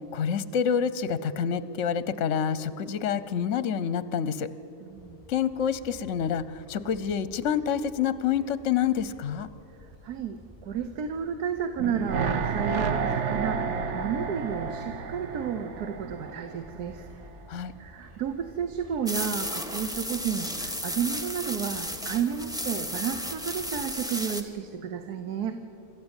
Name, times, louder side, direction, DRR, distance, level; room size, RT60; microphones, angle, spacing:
voice 1, 0.1-4.5 5.3-9.5 17.5-17.7, left 8 dB, 60° left, 16 dB, 1.0 m, -27 dB
voice 2, 4.8-5.2 10.0-17.1 17.8-25.6, right 8 dB, 80° right, 9 dB, 1.5 m, -32 dB
Wind, 4.9-23.9, equal, 30° right, 5.0 m, -52 dB
sound 1, 11.8-16.9 17.2-17.3, right 5 dB, 55° right, 1.2 m, -30 dB
sound 2, 19.1-24.4, equal, 5° right, 1.2 m, -33 dB
27.5 x 13.5 x 8.9 m, 2.9 s
omnidirectional pair, 1.6 m